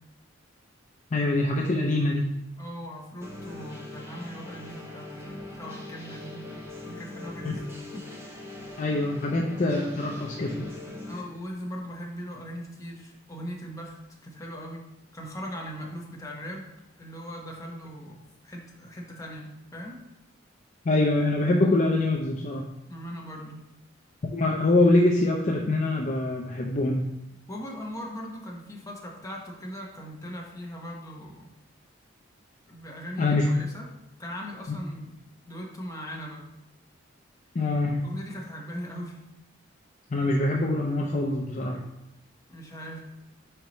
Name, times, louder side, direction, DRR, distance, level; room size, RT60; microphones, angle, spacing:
voice 1, 1.1-2.3 8.8-10.7 20.9-22.6 24.2-27.1 33.2-33.5 34.7-34.8 37.5-38.0 40.1-41.8, left 2 dB, 40° left, 0 dB, 0.5 m, -24 dB
voice 2, 2.6-6.5 6.8-8.1 11.1-16.7 17.0-20.1 22.9-23.7 27.5-31.5 32.7-33.9 34.2-35.2 35.4-36.5 38.0-39.2 42.5-43.0, equal, 15° left, -2 dB, 1.1 m, -39 dB
sound 1, 3.2-11.2, left 2 dB, 15° right, 0.9 m, -41 dB
4.5 x 4.5 x 5.2 m, 0.85 s
head